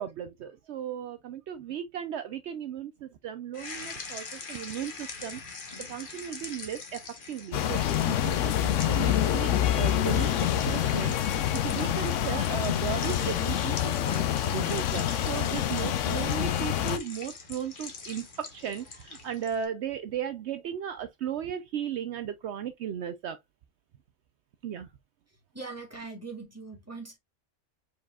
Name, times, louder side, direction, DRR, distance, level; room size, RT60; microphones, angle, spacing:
voice 1, 0.0-5.4 5.9-7.0 7.3-23.4 24.6-24.9, right 9 dB, 70° right, 0.8 m, -36 dB
sound 1, 3.5-19.7, left 4 dB, 45° left, 1.3 m, -44 dB
sound 2, 7.5-17.0, left 11 dB, 90° left, 1.0 m, -27 dB
voice 2, 25.5-27.2, right 4 dB, 10° right, 1.9 m, -41 dB
4.9 x 4.3 x 2.3 m
omnidirectional pair, 1.2 m